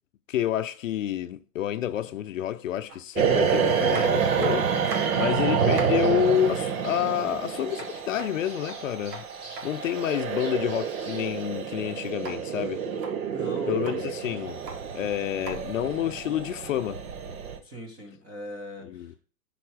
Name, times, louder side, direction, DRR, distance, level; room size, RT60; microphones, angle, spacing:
voice 1, 0.3-4.7 5.1-9.3 9.6-12.8 13.7-14.6 14.9-17.0 18.8-19.2, left 11 dB, 55° left, 0.6 m, -29 dB
sound 1, 2.9-3.0 3.9-5.3 5.5-6.0 7.7-9.7 12.2-12.4 12.9-13.1 13.7-14.0 14.5-14.8 15.4-15.6 16.8-16.9, right 4 dB, 80° right, 2.2 m, -39 dB
sound 2, 3.1-17.6, right 7 dB, 60° right, 1.4 m, -28 dB
voice 2, 3.8-4.1 13.3-14.0 14.2-14.5 17.6-19.2, equal, 10° right, 0.6 m, -41 dB
sound 3, 4.2-11.4, right 3 dB, 40° right, 3.5 m, -49 dB
9.8 x 4.4 x 4.7 m
hypercardioid pair, 165°, 47 cm